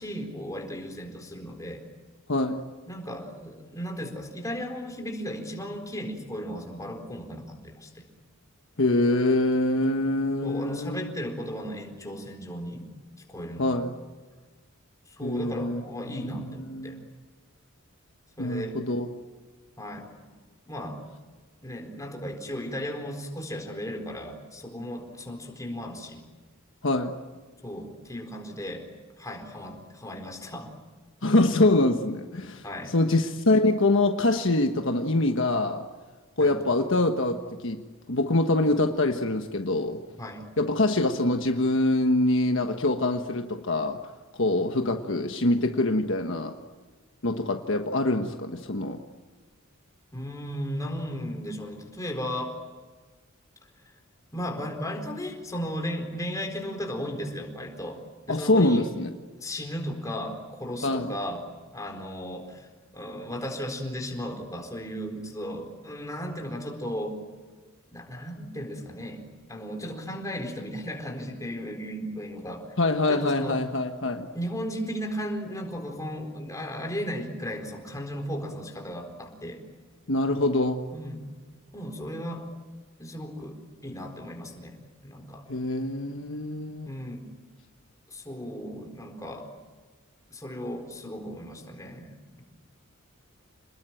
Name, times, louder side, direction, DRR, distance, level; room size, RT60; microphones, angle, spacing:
voice 1, 0.0-1.8 2.9-8.0 10.4-12.9 13.3-13.8 15.1-17.0 18.4-18.8 19.8-20.1 20.7-21.0 21.6-26.2 27.6-28.8 29.2-30.7 32.6-32.9 36.4-36.6 40.2-40.5 50.1-52.5 54.3-58.9 59.4-61.4 61.7-62.7 62.9-67.2 67.9-69.2 69.5-72.6 73.1-73.6 74.3-79.6 80.9-81.3 81.7-82.5 83.0-85.5 86.8-87.3 88.1-89.5 90.3-92.4, equal, 15° left, 3 dB, 4.2 m, -35 dB
voice 2, 2.3-2.6 8.8-11.3 13.6-13.9 15.2-17.0 18.4-19.1 26.8-27.1 31.2-35.8 36.4-40.0 40.6-44.0 44.4-46.6 47.2-49.0 58.3-59.1 60.8-61.2 72.8-74.3 80.1-80.8 85.5-86.9, left 2 dB, 60° left, 5 dB, 1.4 m, -25 dB
28.5 x 20.5 x 9.1 m, 1.3 s
head